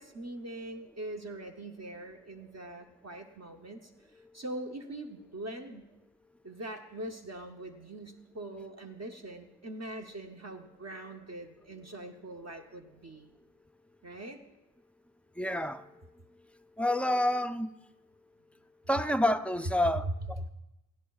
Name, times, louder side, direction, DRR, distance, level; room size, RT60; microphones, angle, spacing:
voice 1, 0.0-5.9 6.4-13.3 14.0-14.4 20.0-20.1, right 1 dB, 40° right, 0.7 m, -42 dB
voice 2, 15.4-16.1 16.8-17.7 18.9-20.5, left 1 dB, 5° left, 0.4 m, -29 dB
18.0 x 15.5 x 2.3 m
wide cardioid pair, 80°, 40 cm